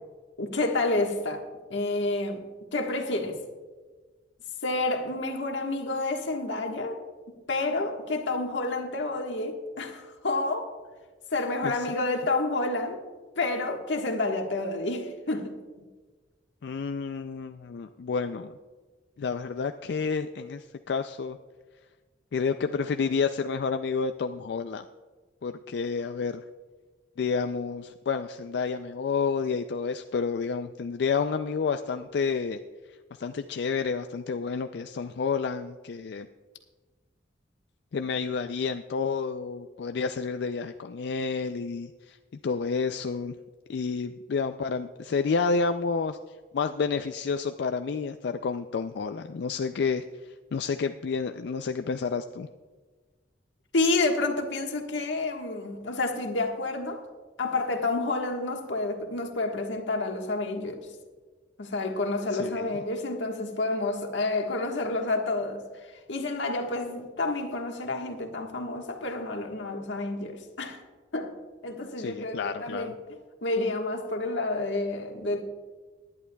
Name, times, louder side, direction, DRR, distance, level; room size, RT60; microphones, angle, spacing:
voice 1, 0.4-1.4 1.7-2.4 2.7-3.4 4.6-7.0 7.5-10.7 11.3-13.0 13.4-15.6 53.7-57.0 57.4-60.9 61.6-65.6 66.1-70.8 71.1-71.3 71.6-72.9 73.4-75.4, left 2 dB, 90° left, 1.4 m, -29 dB
voice 2, 16.6-18.5 19.2-21.4 22.3-24.8 25.4-26.4 27.2-32.6 33.2-36.3 37.9-42.2 42.4-43.3 43.7-46.2 46.5-52.5 62.3-62.8 72.0-72.9, left 5 dB, 65° left, 0.4 m, -30 dB
19.5 x 10.5 x 2.3 m
head